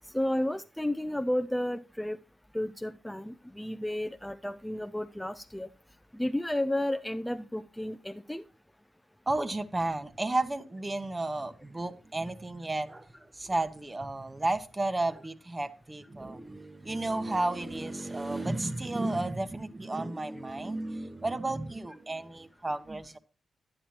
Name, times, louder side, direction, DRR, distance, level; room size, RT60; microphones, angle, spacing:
voice 1, 0.1-2.2 2.5-5.7 6.1-8.4, left 1 dB, 10° left, 9 dB, 0.5 m, -32 dB
voice 2, 9.3-13.1 13.3-23.2, right 2 dB, 25° right, 10 dB, 1.0 m, -32 dB
9.9 x 8.8 x 3.0 m, 0.35 s
supercardioid pair, 45°, 0 cm